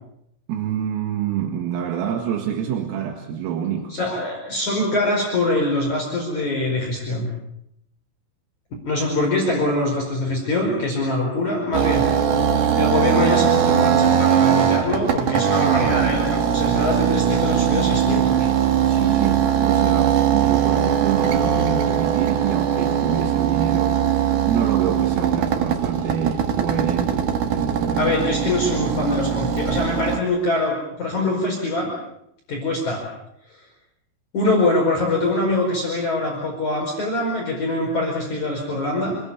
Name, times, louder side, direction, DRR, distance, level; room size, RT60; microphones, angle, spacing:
voice 1, 0.5-4.0 18.8-28.1, right 9 dB, 80° right, 3 dB, 4.5 m, -27 dB
voice 2, 3.9-7.3 8.9-12.1 12.8-18.5 28.0-32.0 32.5-33.0 34.3-39.2, left 2 dB, 35° left, -1 dB, 5.9 m, -23 dB
sound 1, 11.7-30.2, right 8 dB, 60° right, 2.1 m, -20 dB
28.0 x 22.0 x 7.1 m, 0.77 s
omnidirectional pair, 6.0 m